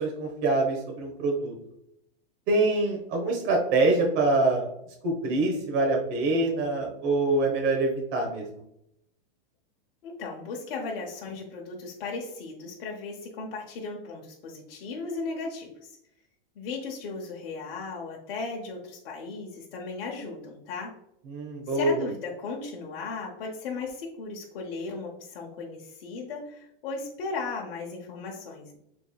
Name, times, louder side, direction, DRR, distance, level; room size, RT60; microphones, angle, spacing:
voice 1, 0.0-1.5 2.5-4.7 5.0-8.4 21.3-22.0, right 2 dB, 40° right, 0 dB, 1.1 m, -25 dB
voice 2, 10.0-15.9 16.6-21.0 21.7-28.8, left 4 dB, 65° left, -1 dB, 1.0 m, -36 dB
5.2 x 3.5 x 2.3 m, 0.77 s
supercardioid pair, 150°, 30 cm